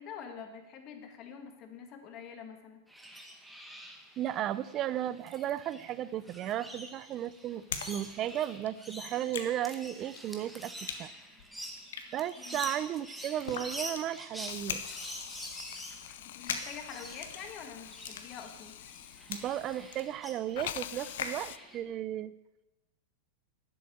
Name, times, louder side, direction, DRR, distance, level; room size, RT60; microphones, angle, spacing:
voice 1, 0.0-2.8 12.4-12.7 16.2-18.8, left 7 dB, 25° left, 6 dB, 1.5 m, -46 dB
sound 1, 2.9-21.8, equal, ahead, 0.9 m, -47 dB
voice 2, 4.2-11.1 12.1-14.8 19.3-22.3, right 11 dB, 20° right, 17 dB, 0.3 m, -35 dB
sound 2, 6.5-7.9 8.2-21.4, left 7 dB, 85° left, 1.5 m, -42 dB
Hiss, 14.5-20.2 20.5-21.6, left 12 dB, 55° left, 0.5 m, -45 dB
11.5 x 7.7 x 8.5 m, 1.0 s
supercardioid pair, 180°, 0 cm